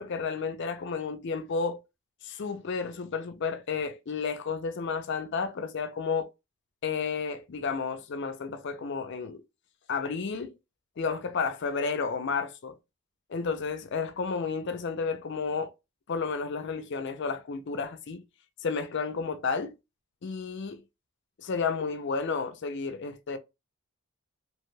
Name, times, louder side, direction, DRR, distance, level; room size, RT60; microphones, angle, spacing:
voice 1, 0.0-1.8 2.2-6.3 6.8-9.4 9.9-10.5 11.0-12.8 13.3-15.7 16.1-18.2 18.6-19.7 20.2-20.8 21.4-23.4, left 5 dB, 55° left, 0.4 m, -32 dB
2.9 x 2.2 x 3.1 m
head